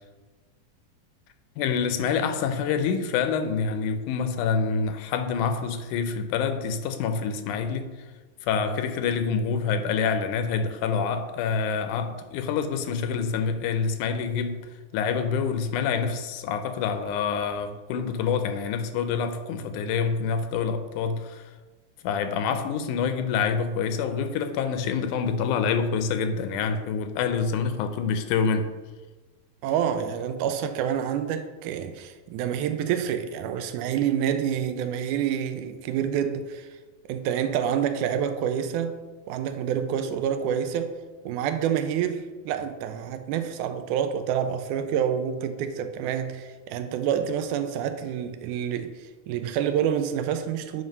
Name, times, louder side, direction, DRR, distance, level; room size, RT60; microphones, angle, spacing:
voice 1, 1.6-7.9 8.4-14.7 14.9-21.4 22.0-28.7, left 6 dB, 80° left, 2.1 m, -26 dB
voice 2, 29.6-36.7 37.1-39.0 39.3-41.0 41.3-50.8, right 8 dB, 85° right, 2.0 m, -27 dB
8.9 x 3.2 x 5.3 m
omnidirectional pair, 3.6 m